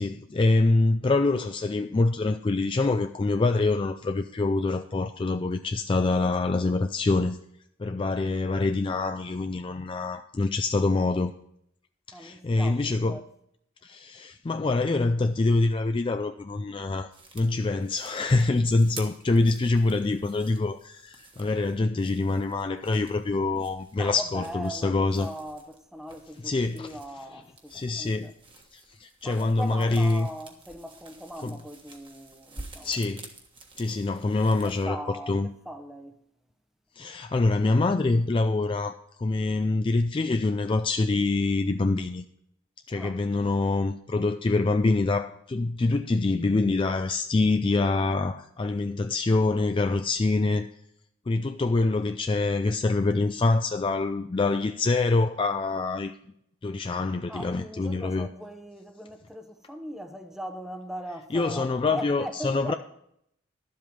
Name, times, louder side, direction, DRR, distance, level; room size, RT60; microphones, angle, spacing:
voice 1, 0.0-7.4 7.8-11.3 12.1-13.2 13.8-17.1 17.3-25.3 26.4-26.9 27.7-28.3 28.7-30.3 31.4-31.6 32.8-33.3 33.8-35.5 37.0-42.2 42.9-50.7 51.3-56.1 56.6-58.3 61.3-62.7, left 3 dB, 25° left, 0.3 m, -25 dB
voice 2, 12.1-13.2 24.0-28.3 29.2-33.0 34.5-36.2 42.9-43.2 57.3-62.8, equal, ahead, 0.9 m, -39 dB
sound 1, 17.1-34.8, right 3 dB, 25° right, 1.4 m, -50 dB
12.0 x 7.7 x 5.3 m
head